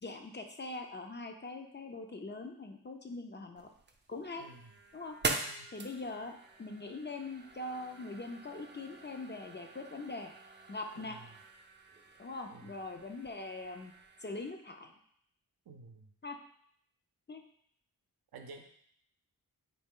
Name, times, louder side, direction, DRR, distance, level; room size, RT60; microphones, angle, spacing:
voice 1, 0.0-3.7 4.1-4.5 4.9-5.2 5.7-10.3 10.7-11.2 12.2-13.9 14.2-14.9 16.2-16.4 17.3-17.4, left 2 dB, 30° left, 5 dB, 0.5 m, -42 dB
sound 1, 3.6-14.5, right 3 dB, 30° right, 0.5 m, -44 dB
voice 2, 4.4-4.8 5.5-5.7 10.9-11.4 12.5-12.7 15.7-16.1 18.3-18.6, right 3 dB, 75° right, 5 dB, 0.6 m, -52 dB
4.0 x 2.3 x 3.6 m, 0.65 s
cardioid pair, 45°, 37 cm